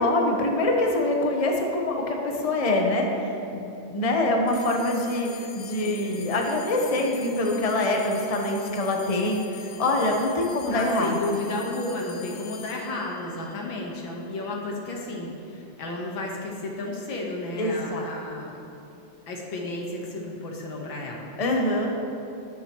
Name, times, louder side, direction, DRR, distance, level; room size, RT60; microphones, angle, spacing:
voice 1, 0.0-3.6 3.9-11.4 17.6-18.1 21.4-22.1, left 2 dB, 25° left, 1 dB, 0.8 m, -25 dB
sound 1, 4.5-15.1, left 6 dB, 55° left, 1.0 m, -45 dB
voice 2, 10.7-18.6 19.3-21.3, left 2 dB, 80° left, -1 dB, 2.1 m, -32 dB
19.0 x 7.2 x 3.1 m, 2.8 s
omnidirectional pair, 2.1 m